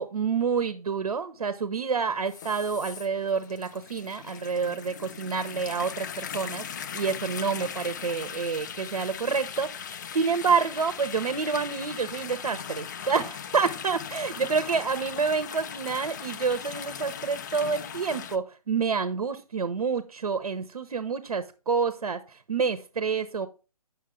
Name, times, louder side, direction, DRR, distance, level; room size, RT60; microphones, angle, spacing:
voice 1, 0.0-6.6 6.9-23.5, right 5 dB, 70° right, 0.9 m, -28 dB
sound 1, 2.3-18.4, left 8 dB, 30° left, 0.4 m, -39 dB
8.5 x 6.3 x 3.7 m
figure-of-eight pair, 145°, 19 cm